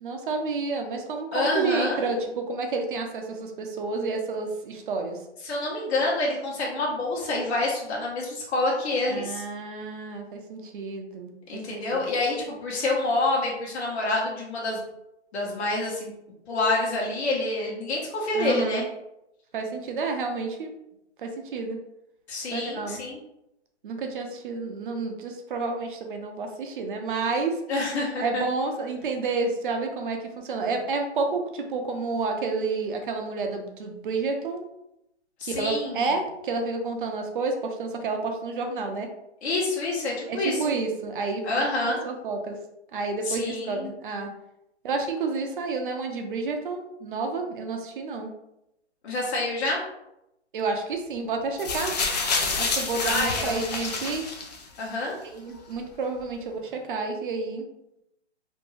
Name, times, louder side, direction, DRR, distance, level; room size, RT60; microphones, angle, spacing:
voice 1, 0.0-5.2 9.1-12.0 18.3-18.8 19.5-20.7 21.2-21.8 22.5-23.0 23.8-27.6 28.2-34.6 35.4-39.1 40.3-41.4 41.8-42.6 42.9-44.3 44.8-48.3 50.5-51.9 52.6-54.2 55.3-57.7, right 4 dB, 45° right, 4 dB, 0.5 m, -30 dB
voice 2, 1.3-2.2 5.4-9.4 11.5-14.8 15.3-16.1 16.5-18.8 22.3-23.2 27.7-28.4 35.4-35.9 39.4-40.6 41.4-42.0 43.3-43.9 49.0-49.8 53.0-53.6 54.8-55.2, left 2 dB, 65° left, -3 dB, 1.0 m, -27 dB
sound 1, 51.6-54.8 55.7-55.8, left 4 dB, 40° left, 0.4 m, -28 dB
2.6 x 2.2 x 3.0 m, 0.85 s
hypercardioid pair, 145°, 35 cm